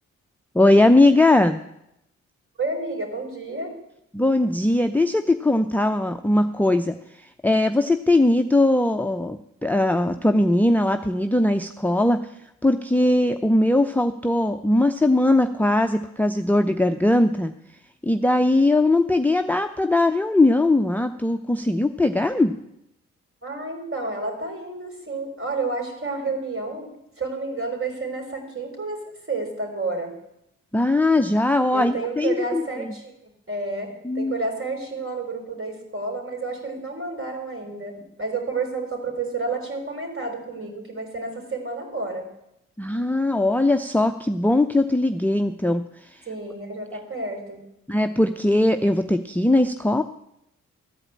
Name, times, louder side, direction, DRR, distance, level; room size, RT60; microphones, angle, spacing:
voice 1, 0.5-1.6 4.1-12.2 12.6-17.5 18.0-22.5 30.7-32.9 34.0-34.3 42.8-45.8 46.1-46.2 47.9-50.0, left 2 dB, 5° left, 8 dB, 0.6 m, -20 dB
voice 2, 2.6-3.7 23.4-26.9 27.2-29.0 29.3-30.2 31.7-33.1 33.5-42.3 46.3-47.6, right 3 dB, 40° right, 2 dB, 4.1 m, -30 dB
13.5 x 5.0 x 8.7 m, 0.82 s
hypercardioid pair, 45°, 35 cm